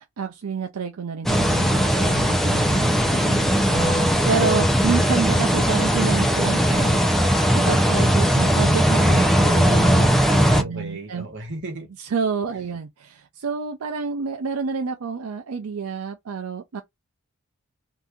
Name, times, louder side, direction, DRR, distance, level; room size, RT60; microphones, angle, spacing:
voice 1, 0.2-2.9 3.6-11.3 12.0-16.8, right 5 dB, 85° right, 0.5 m, -29 dB
sound 1, 1.3-10.6, equal, ahead, 0.5 m, -19 dB
voice 2, 3.1-3.8 10.2-11.9 12.5-12.6, right 1 dB, 60° right, 1.2 m, -35 dB
2.7 x 2.5 x 3.5 m
head